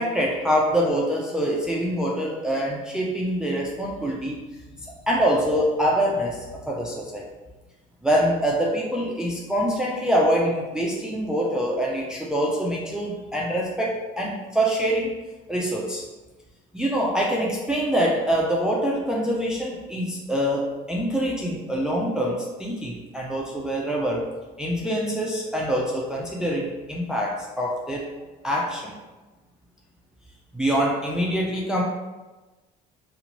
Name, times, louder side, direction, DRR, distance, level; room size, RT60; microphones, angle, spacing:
voice 1, 0.0-4.5 4.8-7.2 8.0-15.2 15.5-16.0 16.7-24.3 24.6-28.0 28.4-28.9 30.5-31.8, equal, 5° right, -3 dB, 0.4 m, -25 dB
2.9 x 2.1 x 2.6 m, 1.2 s
supercardioid pair, 90°, 18 cm